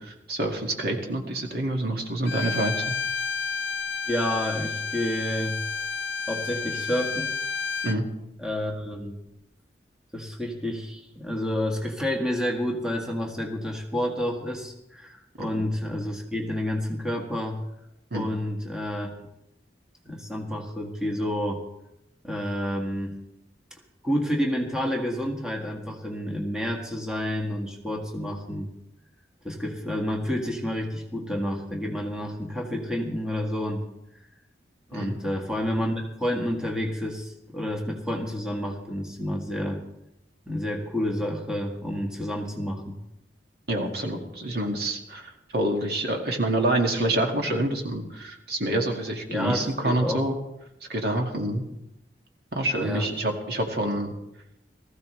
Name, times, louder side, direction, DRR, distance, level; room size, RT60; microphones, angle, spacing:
voice 1, 0.0-3.0 7.8-8.1 15.4-15.6 18.1-18.3 34.9-35.1 43.7-50.4 50.9-51.6 52.5-54.1, right 1 dB, 60° right, 2 dB, 2.0 m, -27 dB
Bowed string instrument, 2.2-8.0, left 4 dB, 75° left, 0.5 m, -31 dB
voice 2, 4.1-5.6 6.3-7.3 8.4-9.2 10.1-17.6 18.1-19.1 20.0-21.6 22.2-23.1 24.0-28.7 29.4-33.8 34.9-39.8 40.5-43.0 49.3-50.3 52.8-53.1, equal, 5° right, 0 dB, 1.7 m, -29 dB
19.5 x 14.5 x 3.3 m, 0.86 s
head